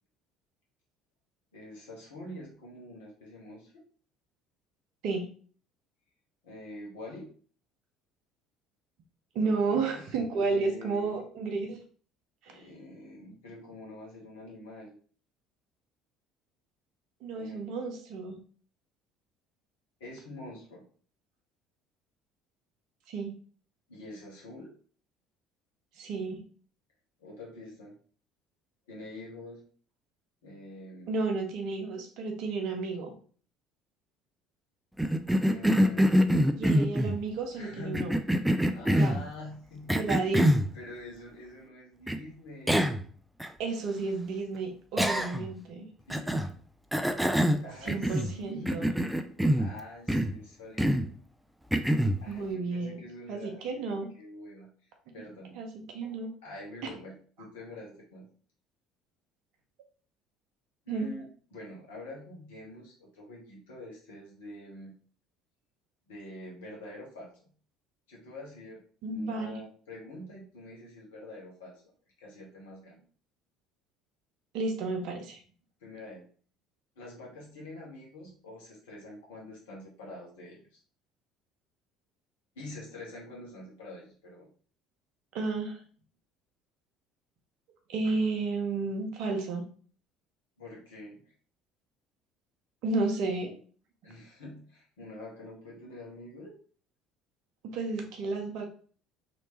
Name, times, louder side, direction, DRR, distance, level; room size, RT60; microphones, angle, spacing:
voice 1, 1.5-3.8 6.4-7.3 9.3-10.1 10.3-11.2 12.5-15.0 17.3-17.6 20.0-20.8 23.9-24.7 27.2-28.0 28.9-29.6 30.4-31.1 35.4-36.2 37.5-38.1 38.7-40.0 40.2-40.4 40.7-43.1 46.0-46.4 47.6-49.0 49.5-51.1 52.2-54.7 55.1-55.6 56.4-58.3 60.8-64.9 66.1-67.3 68.1-68.8 69.1-71.8 72.2-73.0 75.8-76.2 77.0-80.8 82.5-84.5 90.6-91.2 94.0-96.5, left 1 dB, 70° left, -3 dB, 1.2 m, -46 dB
voice 2, 9.3-11.8 12.4-12.6 17.2-18.4 23.1-23.4 26.0-26.4 31.1-33.1 36.6-38.1 38.8-39.2 39.9-40.5 43.6-45.9 47.8-48.9 52.3-53.0 53.3-54.1 55.5-56.3 60.9-61.1 69.0-69.6 74.5-75.4 85.3-85.8 87.9-89.6 92.8-93.5 97.6-98.7, right 3 dB, 60° right, 4 dB, 0.8 m, -32 dB
Cough, 35.0-37.2 37.9-39.2 39.9-40.7 42.1-42.2 42.7-43.1 43.4-43.5 45.0-45.5 46.1-46.5 46.9-48.3 48.7-49.7 50.1-50.4 50.8-51.1 51.7-52.2, equal, 5° right, 0.4 m, -25 dB
3.1 x 3.1 x 3.0 m, 0.43 s
figure-of-eight pair, 60°, 0 cm